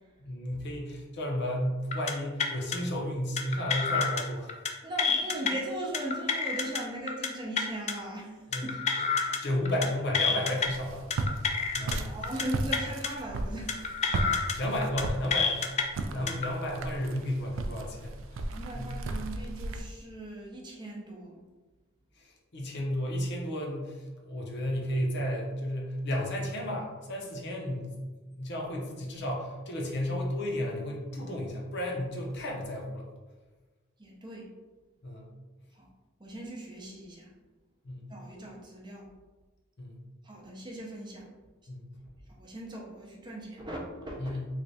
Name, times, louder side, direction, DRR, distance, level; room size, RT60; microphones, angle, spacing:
voice 1, 0.2-4.5 8.5-8.6 9.0-12.2 14.3-15.7 16.1-18.5 18.7-19.0 22.2-28.0 28.4-33.1 35.0-35.3 37.8-38.1 39.8-40.0 41.7-41.8 44.2-44.5, left 1 dB, 55° left, -1 dB, 0.8 m, -33 dB
sound 1, 1.9-2.1 2.4-2.8 3.4-4.2 4.5-4.7 5.0-5.5 5.9-6.8 7.1-7.3 7.6-7.9 8.5-9.4 9.7-9.9 10.1-10.7 11.1-12.0 12.2-12.4 12.7-13.1 13.7-14.5 14.8-15.0 15.3-15.8 16.3-16.5, left 5 dB, 35° left, 0.3 m, -28 dB
voice 2, 4.8-8.8 9.3-9.4 11.7-13.9 14.3-14.5 18.5-21.4 34.0-34.5 35.7-35.9 36.2-37.3 38.1-39.1 40.2-41.3 42.3-44.4, right 1 dB, 20° right, -2 dB, 0.6 m, -39 dB
Walk footsteps, 10.6-19.8, right 2 dB, 65° right, 0.3 m, -35 dB
3.2 x 2.4 x 4.0 m, 1.3 s
head